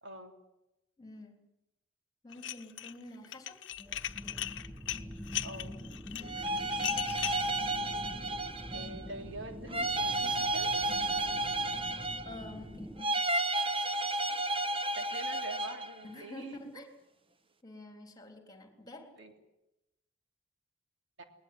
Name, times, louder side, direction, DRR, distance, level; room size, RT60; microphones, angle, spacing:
voice 1, 0.0-0.3 5.4-5.7 8.7-10.7 15.0-16.6 19.2-19.3 21.2-21.3, right 2 dB, 65° right, 5 dB, 3.4 m, -45 dB
voice 2, 1.0-1.4 2.2-3.6 6.3-6.8 11.9-13.3 16.0-16.9 17.6-19.1, left 2 dB, 20° left, 6 dB, 3.5 m, -48 dB
Dishes pots and pans, 2.3-2.9 3.2-7.5, left 12 dB, 65° left, 0.9 m, -37 dB
sound 1, 3.7-13.0, equal, 10° right, 1.0 m, -45 dB
sound 2, 6.2-9.1 9.7-12.5 13.0-16.0, right 2 dB, 25° right, 1.3 m, -32 dB
20.5 x 20.0 x 9.5 m, 0.90 s
head